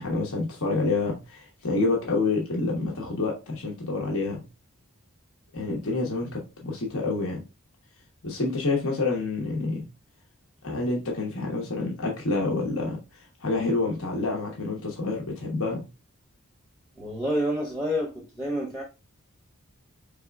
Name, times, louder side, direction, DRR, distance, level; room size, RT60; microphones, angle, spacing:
voice 1, 0.0-4.4 5.5-7.4 8.2-9.8 10.6-15.8, left 3 dB, 70° left, -1 dB, 1.0 m, -28 dB
voice 2, 17.0-18.8, equal, ahead, -2 dB, 0.6 m, -28 dB
4.3 x 3.5 x 2.2 m, 0.27 s
head